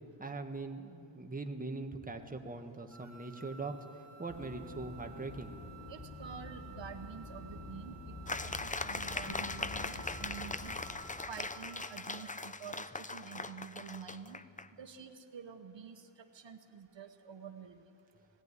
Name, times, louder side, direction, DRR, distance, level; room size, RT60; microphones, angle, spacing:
voice 1, 0.2-5.5, right 3 dB, 15° right, 5 dB, 1.5 m, -41 dB
sound 1, 2.9-12.5, right 7 dB, 35° right, 1.9 m, -56 dB
sound 2, 4.3-10.9, left 2 dB, 60° left, 3.3 m, -48 dB
voice 2, 5.9-10.8 11.3-14.4 14.8-16.0 16.3-17.8, right 7 dB, 65° right, 7 dB, 1.2 m, -48 dB
sound 3, 8.3-14.7, left 3 dB, 15° left, 0.6 m, -40 dB
19.5 x 14.0 x 9.7 m, 2.6 s
cardioid pair, 70°, 47 cm